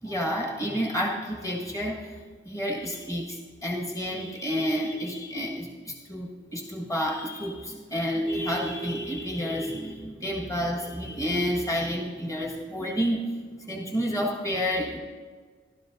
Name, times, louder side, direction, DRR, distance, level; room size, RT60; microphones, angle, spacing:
voice 1, 0.0-2.2 2.4-13.2 13.7-15.0, equal, 15° left, -2 dB, 1.7 m, -30 dB
15.0 x 13.0 x 2.7 m, 1.5 s
head